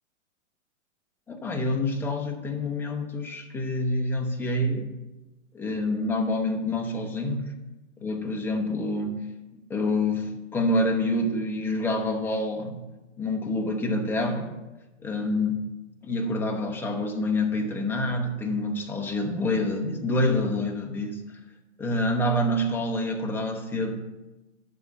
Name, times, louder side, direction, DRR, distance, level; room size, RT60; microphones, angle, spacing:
voice 1, 1.3-4.9 5.5-7.5 8.0-9.2 9.5-12.8 13.2-14.6 15.0-15.7 16.0-21.2 21.8-24.1, left 1 dB, 5° left, 3 dB, 0.6 m, -27 dB
12.0 x 4.1 x 7.0 m, 1.1 s
hypercardioid pair, 135°, 38 cm